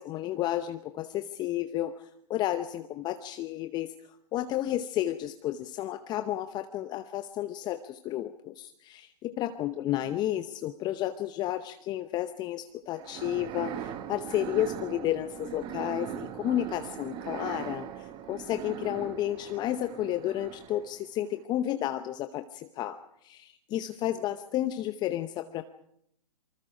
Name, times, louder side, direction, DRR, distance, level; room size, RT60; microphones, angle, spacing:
voice 1, 0.0-3.9 4.3-25.6, left 13 dB, 20° left, 9 dB, 0.8 m, -32 dB
sound 1, 13.0-21.0, right 10 dB, 25° right, 1.3 m, -40 dB
27.5 x 24.5 x 5.1 m, 0.74 s
figure-of-eight pair, 125°, 20 cm